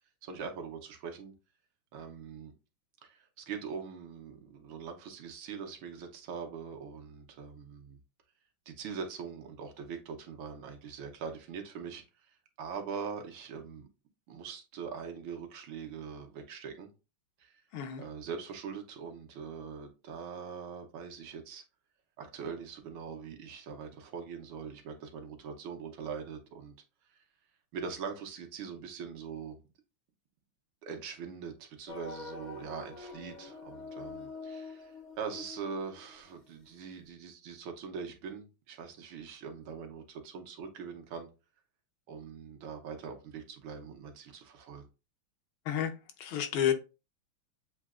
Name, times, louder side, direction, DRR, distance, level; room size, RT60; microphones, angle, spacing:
voice 1, 0.2-1.3 1.9-2.5 3.0-8.0 8.7-13.9 14.3-16.9 17.4-17.6 18.0-21.6 22.2-26.7 27.1-27.2 27.7-29.6 30.8-41.3 42.1-44.8, right 6 dB, 70° right, 1.5 m, -42 dB
voice 2, 17.7-18.0 45.7-45.9 46.2-46.7, left 9 dB, 75° left, 1.4 m, -30 dB
sound 1, 31.9-36.7, left 4 dB, 40° left, 0.6 m, -46 dB
7.3 x 2.7 x 2.4 m
omnidirectional pair, 2.3 m